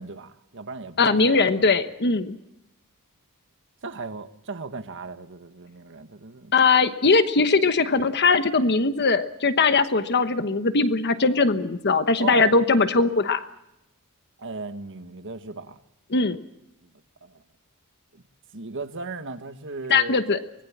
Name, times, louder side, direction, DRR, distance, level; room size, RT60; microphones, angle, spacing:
voice 1, 0.0-1.7 3.8-6.5 12.2-12.5 14.4-15.8 16.8-16.9 17.2-17.4 18.1-18.2 18.5-20.2, right 3 dB, 60° right, 1.5 m, -36 dB
voice 2, 1.0-2.4 6.5-13.5 16.1-16.4 19.9-20.4, left 4 dB, 50° left, 1.1 m, -20 dB
24.0 x 20.0 x 7.4 m
head